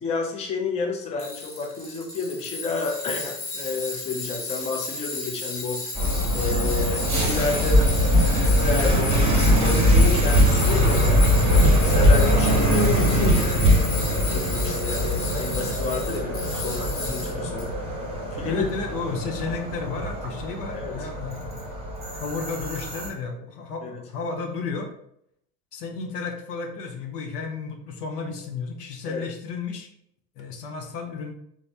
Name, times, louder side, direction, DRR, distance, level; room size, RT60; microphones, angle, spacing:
voice 1, 0.0-5.9 6.3-7.9 8.4-9.2 9.5-13.8 14.3-17.7 18.3-18.6 20.7-21.0 23.8-24.0 29.1-29.2, left 4 dB, 15° left, 1 dB, 0.3 m, -30 dB
Tools, 1.2-17.7, left 3 dB, 45° left, 1.0 m, -33 dB
sound 1, 5.9-23.1, equal, 15° right, 0.9 m, -22 dB
voice 2, 18.4-21.7 22.1-24.9 25.7-29.9 30.4-31.3, left 4 dB, 80° left, 3 dB, 0.7 m, -33 dB
3.1 x 2.0 x 2.5 m, 0.71 s
hypercardioid pair, 80°, 47 cm